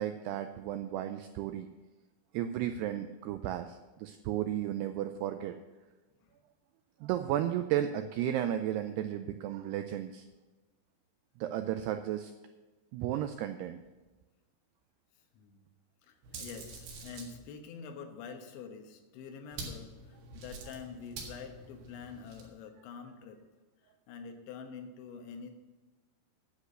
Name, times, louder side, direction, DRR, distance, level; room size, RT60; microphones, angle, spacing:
voice 1, 0.0-1.7 2.3-5.6 7.0-10.3 11.4-12.3 12.9-13.8, right 11 dB, 90° right, 8 dB, 2.3 m, -34 dB
voice 2, 15.3-15.7 16.0-23.4 24.1-25.6, left 6 dB, 80° left, 4 dB, 3.4 m, -46 dB
sound 1, 16.2-17.4 19.5-22.5, right 3 dB, 65° right, 3.7 m, -46 dB
10.0 x 8.3 x 6.6 m, 1.2 s
omnidirectional pair, 5.3 m